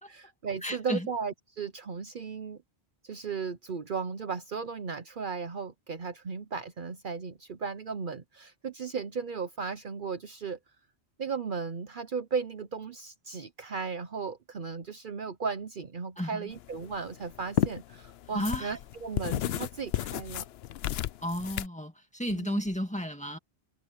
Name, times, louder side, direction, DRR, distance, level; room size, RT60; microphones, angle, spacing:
voice 1, 0.1-2.6 3.0-10.6 11.2-20.5 22.3-22.6, right 5 dB, 55° right, 1.0 m, -36 dB
voice 2, 0.6-1.1 16.2-16.5 18.3-18.8 21.2-23.4, equal, 5° left, 2.1 m, -33 dB
sound 1, 16.6-21.7, left 12 dB, 80° left, 0.8 m, -33 dB
omnidirectional pair, 1.0 m